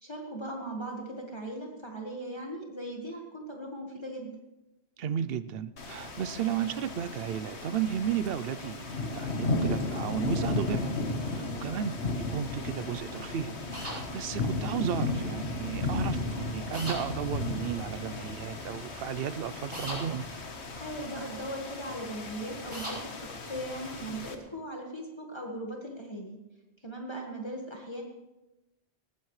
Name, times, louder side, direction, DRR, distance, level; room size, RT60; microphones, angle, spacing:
voice 1, 0.0-4.3 11.3-11.7 20.7-23.0 23.3-26.4 26.8-28.0, right 1 dB, 25° left, -1 dB, 1.6 m, -39 dB
voice 2, 5.0-11.0 11.3-20.3, right 9 dB, 65° right, 14 dB, 0.8 m, -34 dB
sound 1, 5.8-24.4, left 2 dB, 90° left, 1.7 m, -35 dB
sound 2, 13.7-14.0 16.7-17.0 19.7-20.0 22.7-23.0, equal, 25° right, 5.5 m, -36 dB
19.0 x 15.0 x 3.2 m, 1.0 s
omnidirectional pair, 1.1 m